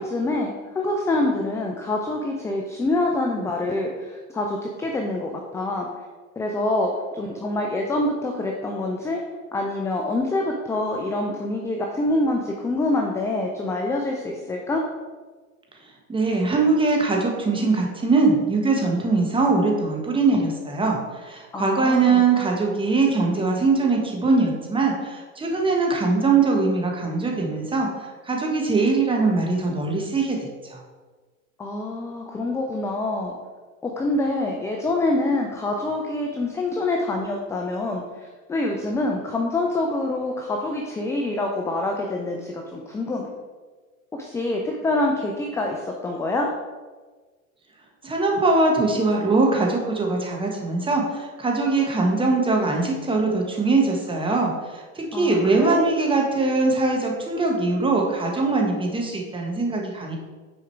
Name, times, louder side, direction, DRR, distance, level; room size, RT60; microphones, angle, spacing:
voice 1, 0.0-5.9 6.4-9.2 9.5-14.8 21.5-22.2 31.6-33.4 33.8-43.3 44.1-46.5 55.1-55.8, left 2 dB, 5° left, 1 dB, 0.3 m, -26 dB
voice 2, 15.8-30.8 48.0-60.2, right 3 dB, 10° right, 0 dB, 1.3 m, -22 dB
6.3 x 4.9 x 4.5 m, 1.4 s
hypercardioid pair, 110°, 42 cm